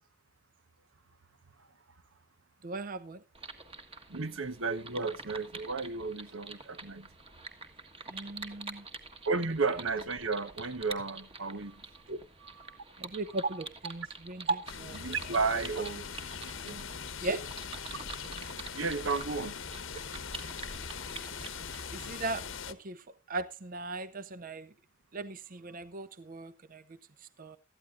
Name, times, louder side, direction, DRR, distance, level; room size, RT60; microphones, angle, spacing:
voice 1, 2.6-3.2 8.1-8.9 12.1-12.2 13.0-15.0 17.2-17.4 21.9-24.7 25.1-27.6, right 2 dB, 45° right, 0.6 m, -37 dB
sound 1, 3.3-22.1, right 3 dB, 30° right, 1.5 m, -47 dB
voice 2, 4.1-7.1 9.2-11.8 12.4-12.8 15.0-16.0 16.6-16.9 18.8-19.6 22.0-22.2, right 4 dB, 80° right, 1.2 m, -33 dB
sound 2, 14.7-22.7, left 6 dB, 80° left, 1.1 m, -41 dB
18.0 x 13.5 x 2.5 m
head